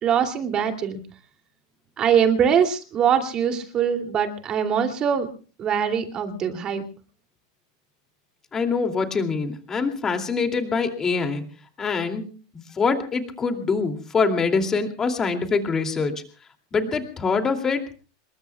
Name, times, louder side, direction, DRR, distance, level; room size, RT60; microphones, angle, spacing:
voice 1, 0.0-1.0 2.0-5.3 5.6-6.8, right 8 dB, 30° right, 5 dB, 2.7 m, -22 dB
voice 2, 8.5-11.4 11.8-12.3 12.5-16.2 16.7-17.8, left 4 dB, 20° left, 6 dB, 2.6 m, -24 dB
27.0 x 22.0 x 2.3 m, 0.37 s
supercardioid pair, 135°, 3 cm